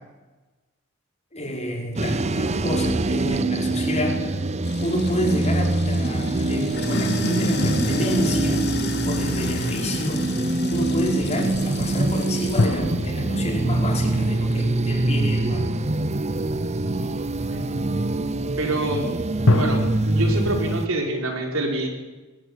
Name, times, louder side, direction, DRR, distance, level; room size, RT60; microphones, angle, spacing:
voice 1, 1.3-4.4 4.8-8.7 9.0-15.8, equal, 30° left, 1 dB, 4.7 m, -28 dB
sound 1, 2.0-20.9, right 2 dB, 30° right, 0.7 m, -24 dB
Sink (filling or washing), 4.6-12.8, left 2 dB, 50° left, 2.7 m, -31 dB
sound 2, 7.6-9.6 12.6-15.8 19.5-19.9, left 2 dB, 70° left, 1.0 m, -27 dB
voice 2, 18.6-19.0 19.5-19.8 20.1-21.9, right 2 dB, 70° right, 2 dB, 4.8 m, -26 dB
20.5 x 14.5 x 9.8 m, 1.2 s
head